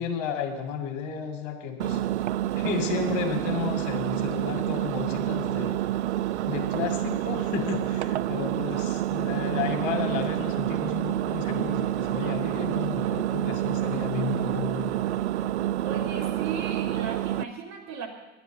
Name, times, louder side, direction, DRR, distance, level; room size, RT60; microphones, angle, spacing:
voice 1, 0.0-2.0 2.6-5.8 6.5-15.0, left 7 dB, 50° left, 4 dB, 2.1 m, -32 dB
Engine, 1.8-17.4, right 13 dB, 65° right, 0.5 m, -28 dB
voice 2, 15.8-18.1, right 5 dB, 45° right, 0 dB, 2.9 m, -36 dB
10.5 x 10.5 x 9.1 m, 1.1 s
figure-of-eight pair, 70°, 36 cm